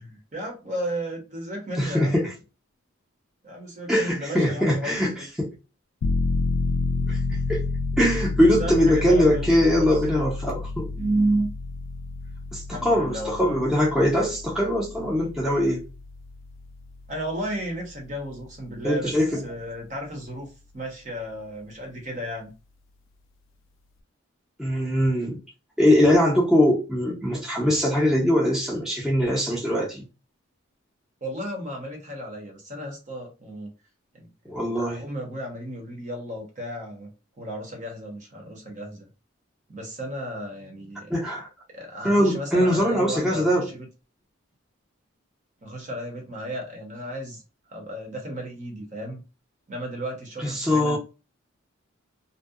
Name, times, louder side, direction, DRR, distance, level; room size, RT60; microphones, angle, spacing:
voice 1, 0.0-2.2 3.4-5.3 8.4-10.0 11.0-11.5 12.7-13.6 13.9-14.1 17.1-22.5 31.2-33.7 34.1-37.1 37.4-39.1 39.7-41.1 41.7-43.9 45.6-47.4 47.7-49.2 49.7-51.0, right 1 dB, 35° right, 0.8 m, -33 dB
voice 2, 1.8-2.3 3.9-5.5 7.1-7.6 8.0-10.9 12.5-15.8 18.8-19.4 24.6-25.4 25.8-30.0 34.5-35.0 41.1-41.5 42.0-43.7 50.4-51.0, equal, 5° right, 0.6 m, -22 dB
sound 1, 6.0-18.5 18.9-19.0, left 3 dB, 70° left, 0.3 m, -30 dB
2.6 x 2.1 x 2.3 m
head